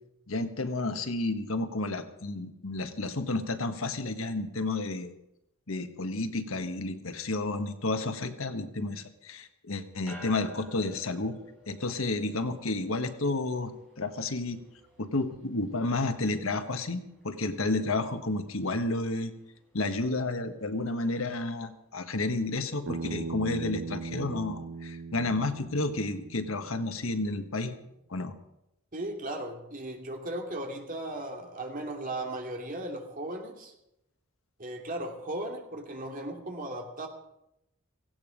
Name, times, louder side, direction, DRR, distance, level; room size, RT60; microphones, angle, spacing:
voice 1, 0.3-5.1 5.7-11.4 11.7-13.7 14.0-14.6 15.0-19.3 19.7-27.7 28.1-28.3, left 2 dB, 90° left, 8 dB, 1.5 m, -31 dB
sound 1, 10.1-21.6, left 1 dB, ahead, 6.4 m, -55 dB
Bass guitar, 22.9-27.1, right 4 dB, 60° right, 0.6 m, -39 dB
voice 2, 28.9-33.7 34.6-37.1, right 1 dB, 40° right, 2 dB, 2.5 m, -36 dB
16.5 x 16.0 x 5.1 m, 0.84 s
head